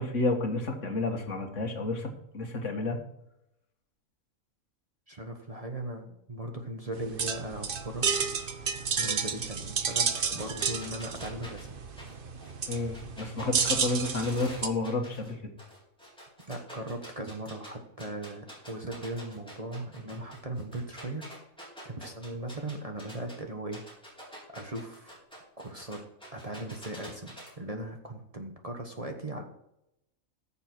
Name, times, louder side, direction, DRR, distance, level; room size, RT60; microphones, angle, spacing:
voice 1, 0.0-3.0 12.7-15.5, left 2 dB, 60° left, 4 dB, 1.9 m, -31 dB
voice 2, 5.1-8.1 9.0-11.7 16.5-21.3 21.8-23.8 24.5-25.1 25.6-26.0 26.3-29.4, right 1 dB, 30° right, 3 dB, 1.2 m, -38 dB
sound 1, 6.9-14.7, right 6 dB, 45° right, 1.0 m, -31 dB
sound 2, 10.1-15.3 15.6-17.7 18.0-23.3 23.7-27.5, equal, 5° left, 4.4 m, -47 dB
14.5 x 7.0 x 4.5 m, 0.82 s
omnidirectional pair, 1.4 m